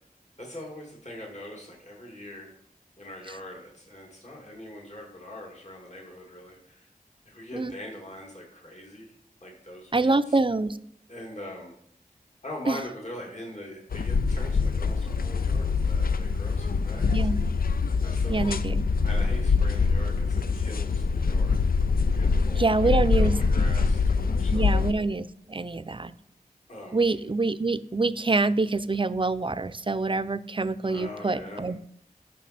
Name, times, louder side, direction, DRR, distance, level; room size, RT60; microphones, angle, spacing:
voice 1, 0.4-2.6 3.0-6.9 7.3-9.1 9.4-10.4 11.1-11.7 12.4-17.1 18.0-18.6 19.0-21.7 22.1-24.7 26.7-27.0 30.8-31.7, left 1 dB, 50° left, -1 dB, 2.3 m, -42 dB
voice 2, 9.9-10.8 12.7-12.8 17.1-17.4 18.3-18.9 22.6-23.3 24.5-26.1 26.9-31.8, right 3 dB, 35° right, 14 dB, 0.5 m, -26 dB
sound 1, 13.9-24.9, left 4 dB, 80° left, 0.5 m, -24 dB
12.5 x 6.0 x 4.3 m, 0.68 s
wide cardioid pair, 45°, 15 cm